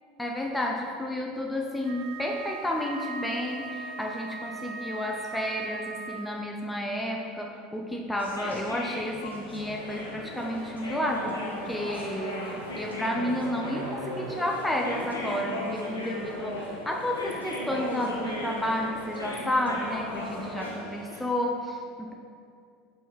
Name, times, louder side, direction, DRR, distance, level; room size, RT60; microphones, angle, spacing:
voice 1, 0.2-22.1, left 1 dB, 5° left, 0 dB, 0.5 m, -31 dB
Wind instrument woodwind instrument, 1.8-6.5, right 4 dB, 55° right, 0.4 m, -39 dB
sound 1, 8.2-20.7, left 1 dB, 80° left, 0.8 m, -37 dB
sound 2, 9.5-21.2, right 1 dB, 85° right, 0.7 m, -44 dB
5.7 x 4.5 x 4.1 m, 2.3 s
figure-of-eight pair, 70°, 0 cm